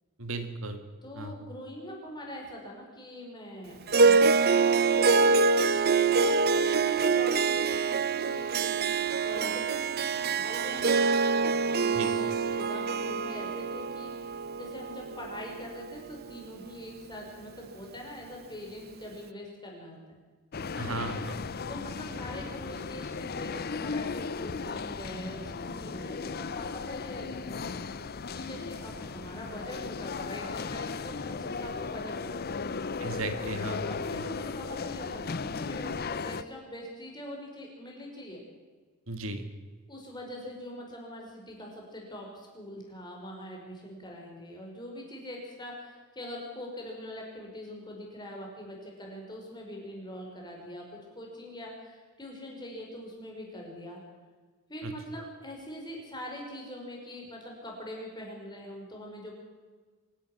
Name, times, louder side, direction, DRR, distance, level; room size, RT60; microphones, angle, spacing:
voice 1, 0.2-0.8 1.2-1.3 12.0-12.1 20.8-21.4 33.0-33.8 34.1-34.2 39.1-39.4 54.8-54.9, right 2 dB, 65° right, 8 dB, 1.8 m, -35 dB
voice 2, 1.0-5.4 6.1-12.3 12.5-20.2 21.7-27.7 28.3-32.7 33.7-38.4 39.9-54.0 54.7-59.4, left 1 dB, 20° left, -1 dB, 5.5 m, -43 dB
Harp, 3.9-16.4, right 4 dB, 45° right, 0.8 m, -25 dB
sound 1, 20.5-36.4, left 4 dB, 45° left, 0.6 m, -36 dB
24.5 x 11.5 x 10.0 m, 1.4 s
head